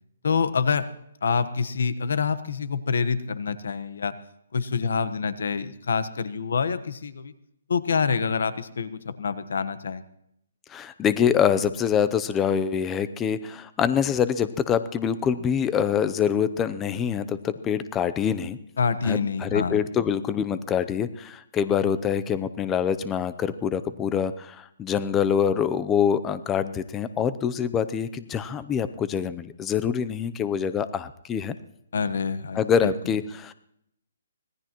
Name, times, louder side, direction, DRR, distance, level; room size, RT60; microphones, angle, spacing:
voice 1, 0.2-0.9 1.2-4.1 4.5-7.3 7.7-10.0 18.8-19.8 31.9-32.9, left 5 dB, 75° left, 13 dB, 1.2 m, -26 dB
voice 2, 10.7-18.6 19.0-31.6 32.6-33.5, left 8 dB, 15° left, 13 dB, 0.6 m, -25 dB
25.0 x 18.5 x 3.0 m, 0.77 s
hypercardioid pair, 165°, 0 cm